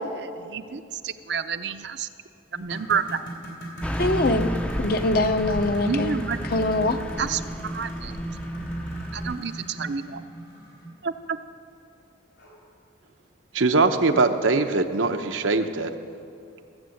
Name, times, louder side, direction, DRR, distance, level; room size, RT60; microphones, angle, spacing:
voice 1, 0.1-2.1 2.5-3.2 5.5-6.4 7.2-8.1 9.1-10.2 11.0-11.4, right 6 dB, 60° right, 11 dB, 0.5 m, -30 dB
sound 1, 2.6-11.0 12.4-12.5 13.0-13.1 13.7-13.8, right 1 dB, 75° left, 4.0 m, -38 dB
Car passing by / Truck, 3.8-9.4, equal, 5° left, 0.4 m, -32 dB
voice 2, 4.0-4.5 4.8-6.2 6.5-7.0, left 2 dB, 50° left, 9 dB, 0.7 m, -23 dB
voice 3, 13.5-15.9, right 3 dB, 90° right, 7 dB, 0.8 m, -21 dB
15.5 x 7.8 x 7.8 m, 2.5 s
head